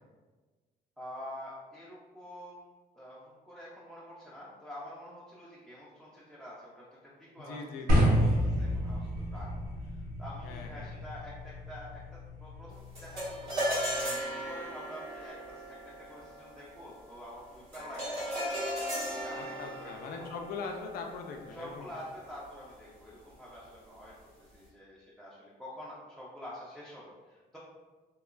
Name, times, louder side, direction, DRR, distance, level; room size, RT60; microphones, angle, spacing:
voice 1, 1.0-20.3 21.5-24.1 24.5-27.6, equal, ahead, -7 dB, 0.3 m, -48 dB
voice 2, 7.5-8.1 10.4-10.9 19.4-21.9, left 4 dB, 75° left, 3 dB, 0.4 m, -41 dB
sound 1, 7.9-14.0, equal, 70° right, 0.7 m, -31 dB
sound 2, 12.9-22.4, equal, 90° right, 1.4 m, -37 dB
2.9 x 2.2 x 2.4 m, 1.3 s
cardioid pair, 155°, 15 cm